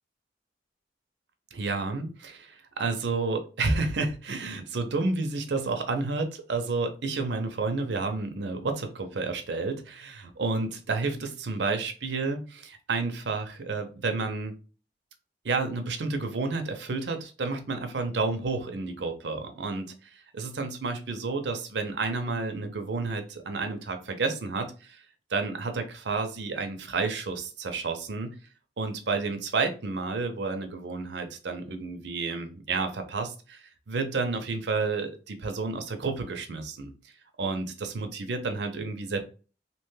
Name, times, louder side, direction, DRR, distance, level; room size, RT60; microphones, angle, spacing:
voice 1, 1.5-2.1 2.5-14.5 15.4-25.0 25.3-28.4 28.8-36.9 37.4-39.2, right 3 dB, 70° right, 6 dB, 0.6 m, -30 dB
2.9 x 2.2 x 3.1 m, 0.35 s
head